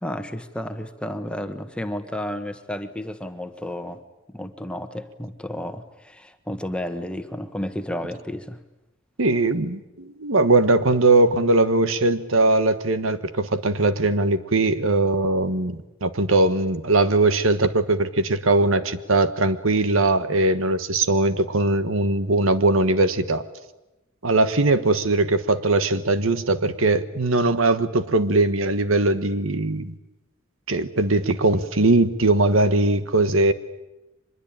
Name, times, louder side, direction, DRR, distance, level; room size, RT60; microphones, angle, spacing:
voice 1, 0.0-4.0 4.3-8.6, left 1 dB, 5° left, 8 dB, 1.4 m, -32 dB
voice 2, 9.2-23.4 24.2-29.9 30.7-33.5, right 2 dB, 85° right, 12 dB, 1.3 m, -20 dB
25.0 x 21.0 x 8.9 m, 1.0 s
head